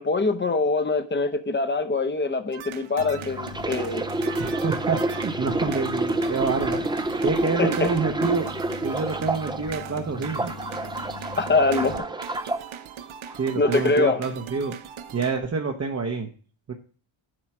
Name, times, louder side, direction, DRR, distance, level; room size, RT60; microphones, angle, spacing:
voice 1, 0.0-4.1 7.6-7.9 11.3-12.1 13.6-14.2, left 3 dB, 25° left, 9 dB, 0.6 m, -23 dB
sound 1, 2.5-15.4, right 8 dB, 85° right, 0.8 m, -39 dB
sound 2, 3.0-12.0, left 4 dB, 80° left, 1.0 m, -40 dB
sound 3, 3.2-9.7 10.1-12.6 13.3-13.5, right 2 dB, 10° right, 0.3 m, -28 dB
voice 2, 4.4-8.5 8.8-10.5 13.4-14.8 15.1-16.3 16.7-16.8, right 4 dB, 35° right, 2 dB, 0.7 m, -27 dB
7.5 x 4.5 x 5.9 m, 0.41 s
wide cardioid pair, 150°, 47 cm